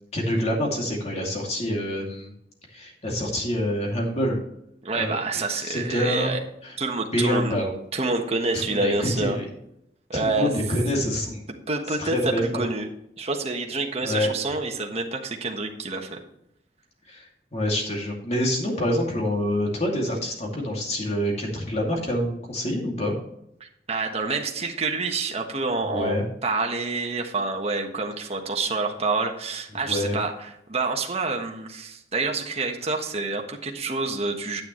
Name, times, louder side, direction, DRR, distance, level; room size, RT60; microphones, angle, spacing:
voice 1, 0.1-2.3 2.7-4.4 4.9-5.2 5.5-6.3 6.6-6.8 7.1-7.7 8.5-9.5 10.1-11.4 12.0-12.4 14.0-14.3 17.1-23.1 25.8-26.2 29.7-30.1, left 1 dB, 40° left, 0 dB, 2.5 m, -26 dB
voice 2, 4.8-6.4 6.8-7.6 7.9-9.4 10.1-10.5 11.7-12.1 12.5-12.9 13.2-16.2 23.6-26.2 26.4-34.6, right 3 dB, 35° right, 2 dB, 1.3 m, -27 dB
9.6 x 9.4 x 3.2 m, 0.77 s
head